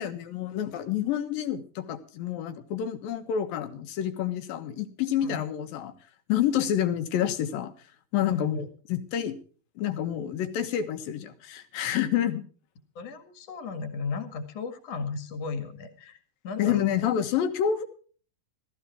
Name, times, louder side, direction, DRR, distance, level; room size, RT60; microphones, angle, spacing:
voice 1, 0.0-5.9 6.3-7.7 8.1-8.6 8.9-9.4 9.8-12.4 16.6-17.8, left 10 dB, 75° left, 9 dB, 3.0 m, -28 dB
voice 2, 8.2-8.7 13.0-16.2 16.4-17.0, left 4 dB, 50° left, 7 dB, 2.9 m, -35 dB
16.5 x 14.5 x 4.6 m, 0.42 s
omnidirectional pair, 4.2 m